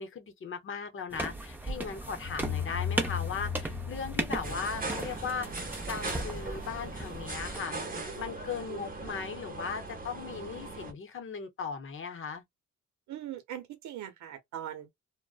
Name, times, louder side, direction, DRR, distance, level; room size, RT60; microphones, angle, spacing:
voice 1, 0.0-7.8 8.2-12.4, left 6 dB, 45° left, 0.7 m, -38 dB
sound 1, 1.1-7.6, right 2 dB, 5° right, 0.5 m, -37 dB
sound 2, 2.2-5.1, left 10 dB, 80° left, 0.9 m, -36 dB
sound 3, 4.4-10.9, right 2 dB, 30° right, 0.8 m, -40 dB
voice 2, 13.1-14.9, right 11 dB, 70° right, 0.8 m, -40 dB
2.5 x 2.1 x 2.3 m
cardioid pair, 90°, 30 cm